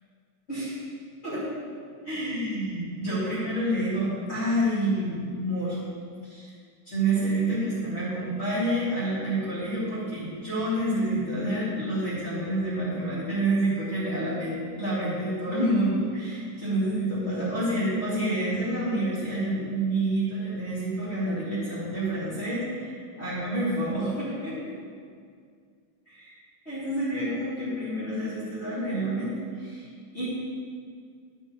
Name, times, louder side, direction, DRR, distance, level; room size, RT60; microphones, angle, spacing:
voice 1, 0.5-0.8 1.2-1.4 2.0-5.8 6.2-6.5 6.9-24.7 26.1-26.3 26.7-29.8 30.1-30.3, right 1 dB, 25° left, -12 dB, 1.9 m, -28 dB
10.5 x 6.5 x 3.0 m, 2.1 s
omnidirectional pair, 4.0 m